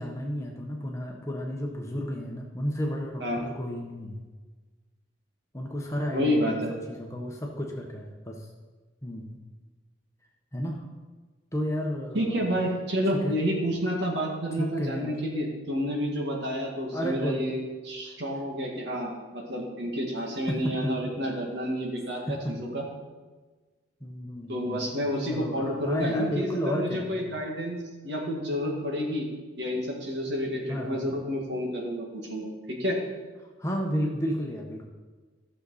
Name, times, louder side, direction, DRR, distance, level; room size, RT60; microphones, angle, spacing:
voice 1, 0.0-4.2 5.5-6.6 6.9-8.5 9.0-9.4 10.5-10.9 11.5-12.5 13.2-13.4 14.6-15.2 16.9-17.4 18.1-18.2 20.5-20.9 22.3-22.6 24.0-24.8 25.3-27.1 30.7-31.0 33.6-34.8, equal, 15° left, 0 dB, 1.1 m, -32 dB
voice 2, 6.1-6.7 12.1-22.2 22.5-22.9 24.5-27.8 28.0-29.3 29.6-33.0, equal, 60° right, -1 dB, 2.0 m, -29 dB
14.5 x 6.9 x 4.1 m, 1.3 s
head